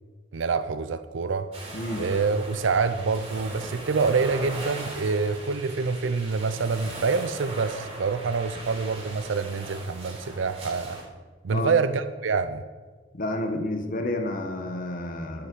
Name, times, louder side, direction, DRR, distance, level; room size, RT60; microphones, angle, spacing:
voice 1, 0.3-1.5 2.0-11.0 11.4-12.6, right 4 dB, 80° right, 0.5 m, -26 dB
sound 1, 1.5-11.0, right 2 dB, 35° right, 3.0 m, -39 dB
voice 2, 1.7-2.0 11.5-11.7 13.1-15.5, left 1 dB, 45° left, 1.1 m, -30 dB
11.0 x 5.7 x 6.2 m
head